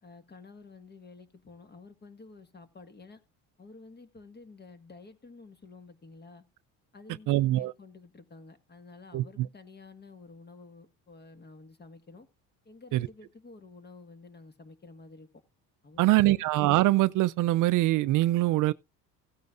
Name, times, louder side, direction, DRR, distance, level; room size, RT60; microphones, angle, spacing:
voice 1, 0.0-3.2 3.6-6.4 6.9-12.3 12.7-15.3 15.8-16.4, left 4 dB, 30° left, 1.7 m, -51 dB
voice 2, 7.3-7.7 9.1-9.5 12.9-13.1 16.0-18.7, right 17 dB, 60° right, 0.5 m, -23 dB
16.0 x 9.2 x 2.5 m
supercardioid pair, 95°, 35 cm